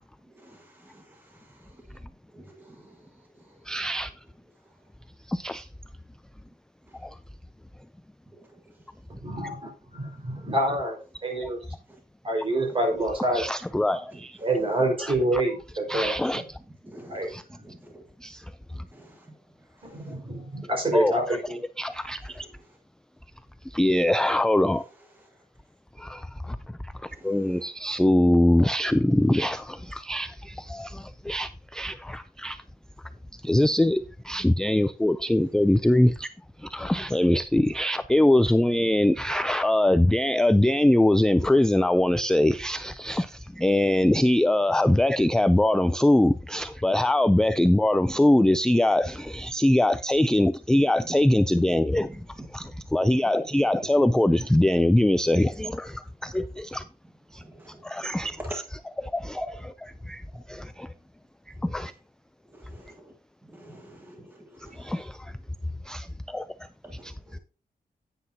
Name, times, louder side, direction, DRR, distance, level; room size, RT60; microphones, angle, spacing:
voice 1, 0.2-3.8 4.6-4.8 6.9-7.0 8.3-8.9 11.9-12.0 12.4-12.8 14.1-14.9 16.7-18.1 18.7-20.3 22.3-22.8 25.0-25.4 27.1-27.7 33.1-33.2 51.0-51.2 52.0-52.5 53.7-54.1 57.4-58.6 59.3-60.0 61.6-61.7 62.4-63.1 63.4-65.1 66.8-67.4, right 1 dB, 15° right, 1.4 m, -48 dB
voice 2, 3.7-4.1 5.3-5.7 7.0-7.2 11.4-11.5 13.3-14.4 15.0-15.4 15.9-16.4 17.3-17.4 18.2-18.5 20.9-21.4 21.8-22.5 23.7-24.8 26.0-26.6 26.8-32.6 33.4-36.3 36.6-52.2 52.5-56.8 57.3-57.4 57.8-58.4 59.0-59.5 60.0-60.2 60.5-60.9 61.6-61.9 64.7-65.3 65.9-66.5 67.0-67.1, left 1 dB, 5° left, 0.3 m, -23 dB
voice 3, 9.2-11.6 12.2-13.4 14.4-16.4 17.1-17.3 19.8-21.6, right 1 dB, 35° right, 4.5 m, -27 dB
9.9 x 9.7 x 2.7 m
wide cardioid pair, 125°, 15 cm